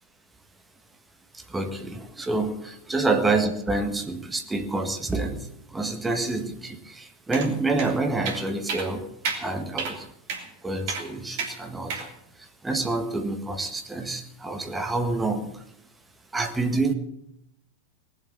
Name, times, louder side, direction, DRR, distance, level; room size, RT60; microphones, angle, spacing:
voice 1, 1.3-9.1 9.4-10.0 10.6-12.1 12.4-15.6 16.3-16.9, right 3 dB, 10° right, 6 dB, 1.8 m, -28 dB
sound 1, 7.3-7.5 7.8-7.9 8.2-8.4 8.7-8.9 9.2-9.4 9.8-9.9 10.3-10.4 10.9-11.0 11.4-11.5 11.9-12.1, right 5 dB, 50° right, 3.2 m, -30 dB
19.5 x 7.9 x 8.7 m, 0.80 s
figure-of-eight pair, 90°, 0 cm